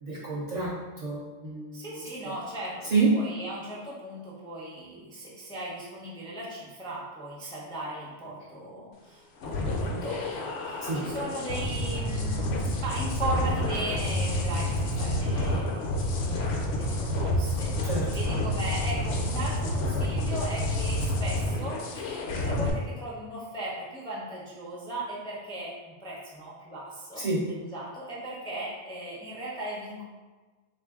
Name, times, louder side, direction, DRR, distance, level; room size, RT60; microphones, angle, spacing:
voice 1, 0.0-2.3 2.8-3.1 10.8-11.0 17.8-18.3 27.2-27.5, right 3 dB, 50° right, -6 dB, 0.5 m, -29 dB
voice 2, 1.7-16.5 16.8-27.2 27.7-30.0, right 1 dB, 5° left, -5 dB, 0.4 m, -37 dB
sound 1, 9.4-22.7, left 1 dB, 70° left, 0.8 m, -29 dB
3.5 x 2.5 x 3.4 m, 1.3 s
omnidirectional pair, 1.2 m